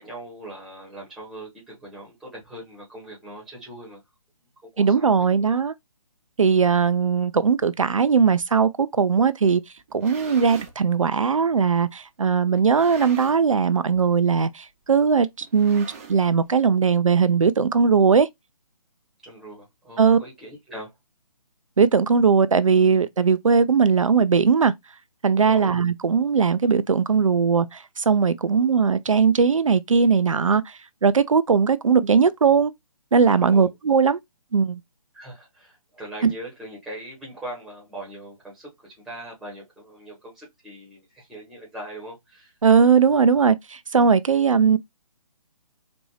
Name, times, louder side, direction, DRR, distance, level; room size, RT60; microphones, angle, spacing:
voice 1, 0.0-4.0 4.6-5.6 19.2-20.9 25.5-25.8 33.5-33.7 35.1-42.5, right 1 dB, ahead, 1.2 m, -40 dB
voice 2, 4.8-5.7 6.4-9.6 9.9-18.3 20.0-20.2 21.8-24.7 25.2-32.7 33.1-34.2 34.5-34.8 36.2-36.3 42.6-44.8, right 5 dB, 60° right, 0.4 m, -19 dB
sound 1, 9.8-10.8 11.5-11.6 12.5-13.6 13.9-14.2 14.4-14.5 15.4-16.5, right 5 dB, 25° right, 0.7 m, -42 dB
4.1 x 2.6 x 3.1 m
figure-of-eight pair, 140°, 19 cm